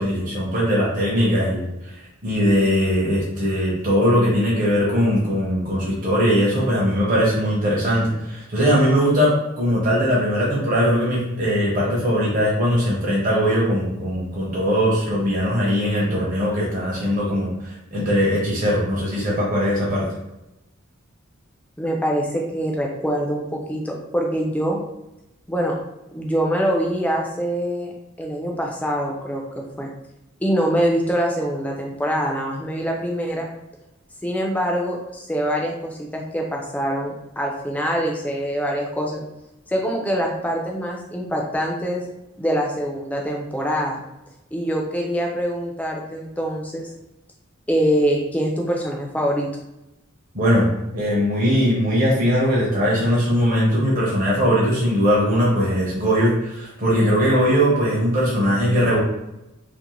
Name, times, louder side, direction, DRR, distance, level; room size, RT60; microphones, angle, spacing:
voice 1, 0.0-20.0 50.3-50.7 50.9-59.0, equal, 40° right, -5 dB, 0.6 m, -20 dB
voice 2, 21.8-24.8 25.5-25.8 26.1-27.9 28.2-29.9 30.4-33.5 34.2-39.2 39.7-42.1 42.4-44.0 44.5-46.9 47.7-49.5, equal, 5° left, 0 dB, 0.3 m, -24 dB
2.5 x 2.1 x 2.9 m, 0.92 s
head